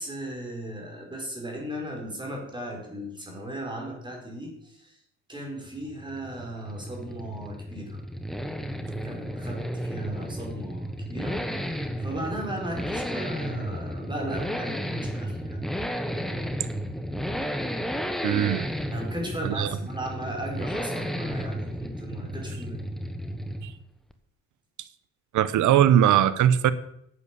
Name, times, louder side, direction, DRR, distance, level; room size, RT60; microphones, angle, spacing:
voice 1, 0.0-5.0 5.3-8.0 9.0-15.7 18.9-22.8, right 1 dB, 15° right, 0 dB, 4.8 m, -36 dB
Accelerating revving vroom, 5.7-23.8 24.1-24.2, equal, ahead, 1.3 m, -33 dB
voice 2, 18.2-18.7 19.4-19.7 23.6-23.7 25.3-26.7, right 10 dB, 75° right, 15 dB, 0.9 m, -20 dB
11.0 x 8.3 x 6.8 m, 0.74 s
cardioid pair, 90°, 30 cm